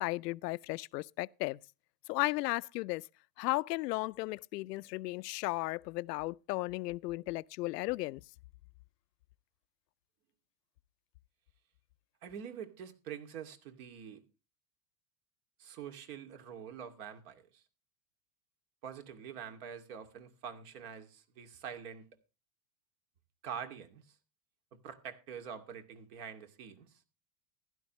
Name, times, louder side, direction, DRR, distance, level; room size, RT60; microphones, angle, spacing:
voice 1, 0.0-1.6 2.1-3.0 3.4-8.2, left 21 dB, 75° left, 0.6 m, -35 dB
voice 2, 12.2-14.2 15.6-17.4 18.8-22.1 23.4-24.0 24.8-26.9, right 8 dB, 65° right, 2.5 m, -45 dB
15.5 x 11.5 x 3.1 m
hypercardioid pair, 115°, 49 cm